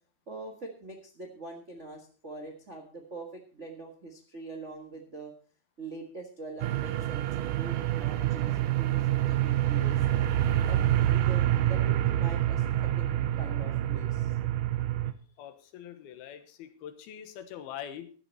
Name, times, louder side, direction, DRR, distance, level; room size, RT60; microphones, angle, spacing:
voice 1, 0.3-5.3 5.8-10.3 10.7-13.0 13.4-14.3, right 2 dB, 65° right, 1 dB, 0.7 m, -43 dB
sound 1, 6.6-15.1, right 13 dB, 85° right, 1.8 m, -27 dB
voice 2, 15.4-18.1, left 10 dB, 75° left, 8 dB, 3.0 m, -43 dB
14.5 x 11.0 x 4.2 m, 0.39 s
omnidirectional pair, 4.6 m